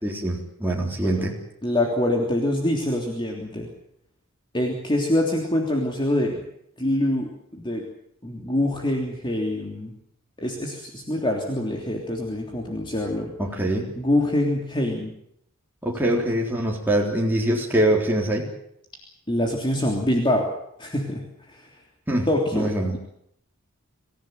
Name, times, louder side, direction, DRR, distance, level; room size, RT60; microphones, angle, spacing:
voice 1, 0.0-1.3 13.4-13.9 15.8-18.5 22.1-22.9, right 1 dB, 10° right, -2 dB, 3.9 m, -24 dB
voice 2, 1.6-3.7 4.5-6.4 6.8-7.8 8.2-9.9 10.4-13.3 14.0-15.1 16.1-16.2 19.3-20.5 20.8-21.2 21.5-21.7 22.3-23.0, left 1 dB, 25° left, 0 dB, 3.3 m, -25 dB
25.5 x 16.0 x 9.3 m, 0.74 s
head